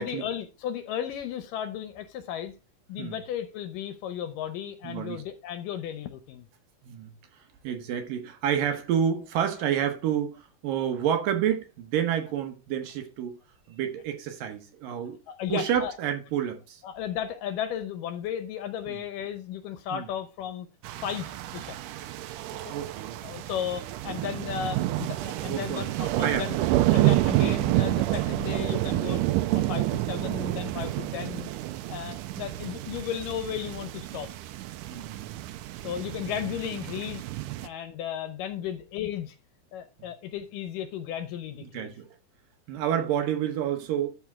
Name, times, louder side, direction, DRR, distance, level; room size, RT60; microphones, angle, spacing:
voice 1, 0.0-2.5 2.9-6.5 15.3-15.9 16.8-20.7 21.0-21.8 22.7-22.8 23.2-26.6 26.9-29.2 29.5-31.5 31.9-34.3 35.8-37.3 37.6-39.4 39.7-41.9, left 9 dB, 75° left, 2.2 m, -34 dB
voice 2, 4.8-5.2 6.8-7.1 7.6-13.4 13.7-15.2 15.5-16.8 18.9-19.0 19.9-20.1 22.7-23.2 25.4-25.9 26.2-26.5 34.9-35.6 40.0-40.1 41.7-42.1 42.7-44.1, right 9 dB, 70° right, 2.6 m, -29 dB
sound 1, 20.8-37.7, right 16 dB, 85° right, 1.8 m, -29 dB
12.5 x 4.4 x 3.6 m
omnidirectional pair, 4.3 m